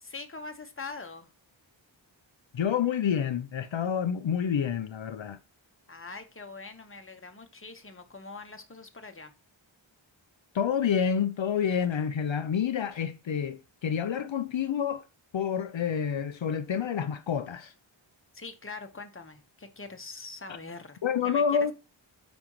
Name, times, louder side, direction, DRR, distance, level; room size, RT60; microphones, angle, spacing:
voice 1, 0.0-1.3 5.9-9.3 18.3-21.4, left 3 dB, 25° left, 1.1 m, -43 dB
voice 2, 2.5-5.4 10.5-15.0 15.3-17.7 21.0-21.7, left 7 dB, 70° left, 0.6 m, -28 dB
8.7 x 5.3 x 3.0 m
wide cardioid pair, 80°, 47 cm